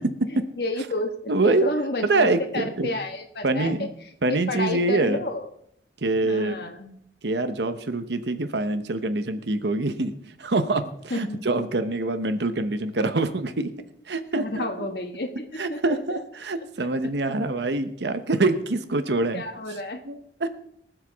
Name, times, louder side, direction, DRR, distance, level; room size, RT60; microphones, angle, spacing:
voice 1, 0.3-3.7 4.5-5.5 6.2-6.9 11.1-11.4 14.3-16.0 19.3-20.0, left 2 dB, 65° left, 3 dB, 1.4 m, -31 dB
voice 2, 1.3-1.7 2.1-2.9 3.4-3.9 4.2-5.2 6.0-6.7 7.2-10.1 10.4-10.8 11.1-13.7 14.1-14.6 15.6-19.4 20.0-20.5, right 2 dB, 80° right, 9 dB, 0.9 m, -25 dB
23.5 x 8.0 x 3.5 m, 0.72 s
head